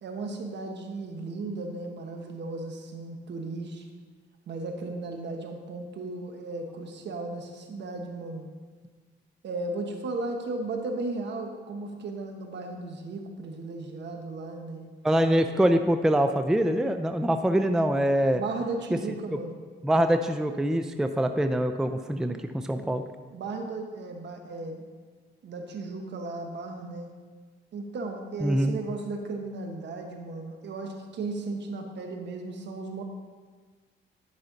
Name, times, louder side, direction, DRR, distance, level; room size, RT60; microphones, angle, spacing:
voice 1, 0.0-3.8 4.5-8.5 9.4-14.9 17.5-17.6 18.3-19.5 22.8-22.9 23.3-24.8 25.4-27.1 27.7-33.0, right 3 dB, 60° right, 4 dB, 1.3 m, -35 dB
voice 2, 15.0-18.4 19.8-23.0 28.4-28.8, right 1 dB, 5° right, 8 dB, 0.4 m, -24 dB
11.0 x 5.6 x 3.9 m, 1.5 s
cardioid pair, 90°, 20 cm